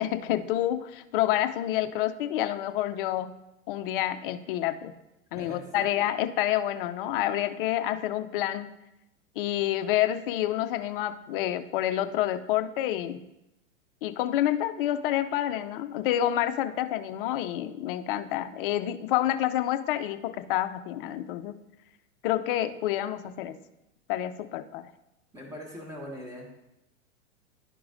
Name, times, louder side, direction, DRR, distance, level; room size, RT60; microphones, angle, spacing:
voice 1, 0.0-3.4 3.7-4.9 5.3-8.7 9.4-13.2 14.0-21.6 22.2-23.6 24.1-24.9, left 12 dB, 45° left, 10 dB, 0.5 m, -28 dB
voice 2, 5.3-5.9 25.3-26.5, equal, 10° right, -1 dB, 1.5 m, -41 dB
11.5 x 4.6 x 2.5 m, 0.91 s
hypercardioid pair, 125°, 40 cm